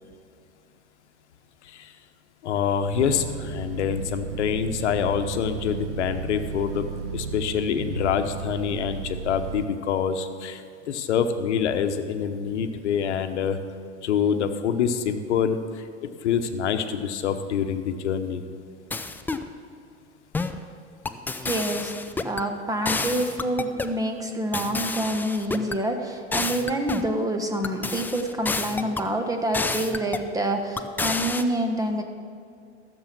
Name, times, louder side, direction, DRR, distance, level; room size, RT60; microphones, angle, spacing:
voice 1, 2.4-10.6 10.9-13.6 14.0-18.4, left 7 dB, 75° left, 9 dB, 1.0 m, -26 dB
sound 1, 2.9-9.7, right 6 dB, 85° right, 0.9 m, -34 dB
sound 2, 18.9-19.5 20.3-20.6 21.1-22.5 22.9-24.0 24.5-25.8 26.3-27.1 27.6-29.1 29.5-30.3 30.8-31.4, left 3 dB, 5° left, 0.4 m, -29 dB
voice 2, 21.3-21.9 22.2-32.0, right 1 dB, 10° right, 5 dB, 1.3 m, -27 dB
13.5 x 7.1 x 6.0 m, 2.3 s
hypercardioid pair, 95°, 35 cm